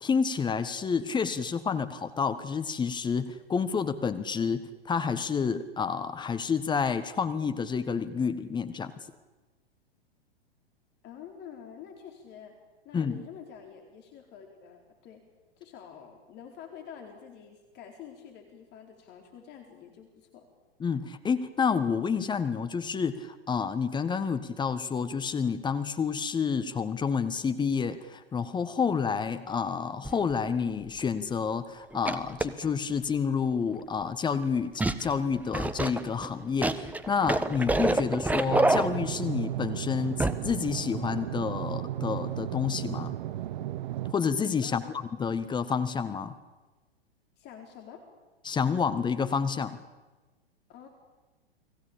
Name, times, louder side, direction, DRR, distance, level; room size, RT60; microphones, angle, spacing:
voice 1, 0.0-8.9 12.9-13.2 20.8-43.1 44.1-44.8 45.2-46.3 48.4-49.8, left 6 dB, 15° left, 11 dB, 1.5 m, -29 dB
voice 2, 11.0-12.5 12.8-15.2 15.6-20.4 44.6-44.9 47.4-48.0 50.7-50.9, left 8 dB, 35° left, 4 dB, 4.2 m, -47 dB
sound 1, 30.1-30.3 31.0-31.1 31.9-32.7 34.8-35.1 35.5-39.3 40.2-40.5 40.8-40.9, right 2 dB, 5° right, 1.2 m, -27 dB
sound 2, 38.4-44.1, right 13 dB, 50° right, 1.0 m, -34 dB
30.0 x 21.0 x 8.7 m, 1.2 s
figure-of-eight pair, 105°, 31 cm